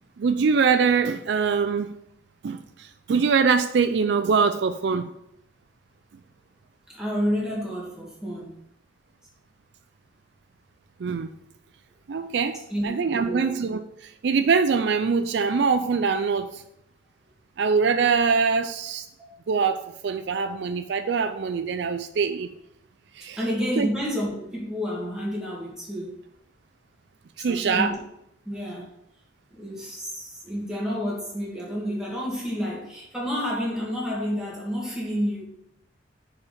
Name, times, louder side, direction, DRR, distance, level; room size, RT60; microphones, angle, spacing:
voice 1, 0.2-2.0 2.4-5.1 11.0-11.3 12.1-12.6 12.8-16.6 17.6-19.0 19.5-22.5 23.2-23.4 23.8-23.9 27.4-27.9, right 5 dB, 65° right, 0.4 m, -23 dB
voice 2, 6.9-8.5 12.7-13.5 23.4-26.2 27.4-27.9 28.5-28.9 29.5-35.4, equal, 5° right, 2.4 m, -29 dB
6.7 x 4.9 x 5.0 m
head